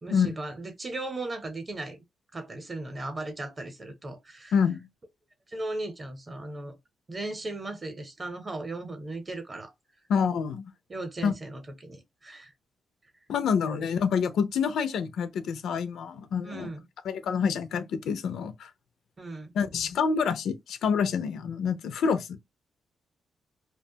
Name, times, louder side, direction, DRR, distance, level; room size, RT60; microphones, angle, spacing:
voice 1, 0.0-2.0 2.3-4.5 5.5-6.8 7.1-9.7 10.9-12.5 16.4-16.8 19.2-19.5, right 2 dB, 25° right, 0.7 m, -37 dB
voice 2, 4.5-4.9 10.1-10.7 11.2-11.3 13.3-16.7 17.0-18.7 19.6-22.4, left 6 dB, 80° left, 0.4 m, -27 dB
2.5 x 2.2 x 2.7 m
wide cardioid pair, 145°, 0 cm